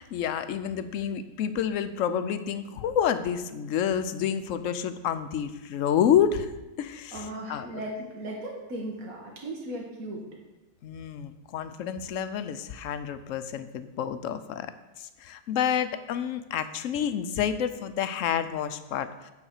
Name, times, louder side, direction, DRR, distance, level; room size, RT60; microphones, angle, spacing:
voice 1, 0.0-6.5 6.8-7.7 10.8-14.7 15.0-19.3, left 8 dB, 70° left, 11 dB, 0.9 m, -29 dB
voice 2, 7.1-10.3, right 1 dB, 75° right, -2 dB, 1.6 m, -37 dB
8.9 x 4.0 x 6.5 m, 1.1 s
omnidirectional pair, 1.5 m